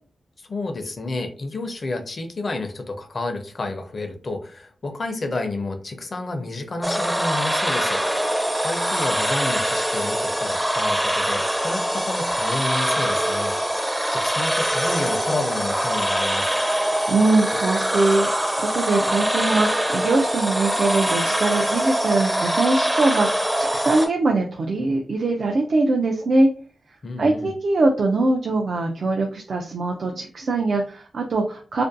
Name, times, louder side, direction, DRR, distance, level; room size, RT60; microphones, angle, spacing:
voice 1, 0.4-8.0 8.6-13.5 14.1-16.5 27.0-27.5, left 2 dB, 50° left, 6 dB, 0.5 m, -30 dB
sound 1, 6.8-24.1, equal, 10° right, 0.5 m, -23 dB
voice 2, 16.9-26.5 27.2-31.8, right 2 dB, 70° right, 1 dB, 0.4 m, -22 dB
2.5 x 2.2 x 2.5 m, 0.39 s
cardioid pair, 75°, 0 cm